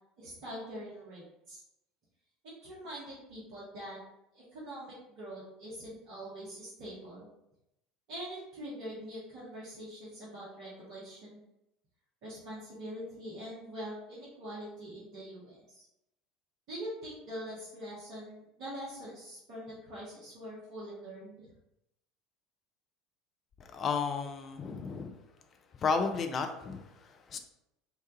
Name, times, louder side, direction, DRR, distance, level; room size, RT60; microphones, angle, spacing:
voice 1, 0.2-1.6 2.6-4.0 4.3-7.2 8.1-11.4 12.2-15.8 16.7-21.5, equal, 50° right, -8 dB, 0.9 m, -44 dB
voice 2, 23.6-25.1 25.7-27.4, left 5 dB, 35° left, 6 dB, 0.4 m, -33 dB
2.8 x 2.2 x 2.7 m, 0.84 s
figure-of-eight pair, 70°, 0 cm